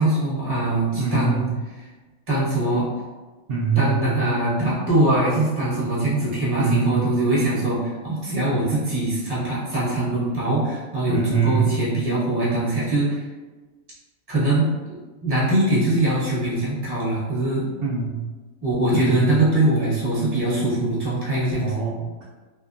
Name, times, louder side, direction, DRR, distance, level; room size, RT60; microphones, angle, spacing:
voice 1, 0.0-1.5 1.8-1.9 2.3-2.9 3.7-13.3 14.3-17.7 18.6-21.7, right 1 dB, 20° right, -8 dB, 0.8 m, -22 dB
voice 2, 0.9-1.5 3.5-4.1 6.6-7.0 11.1-11.7 17.8-18.1 18.9-19.3 21.6-22.2, right 5 dB, 60° right, -8 dB, 0.6 m, -24 dB
2.8 x 2.1 x 2.5 m, 1.2 s
omnidirectional pair, 1.5 m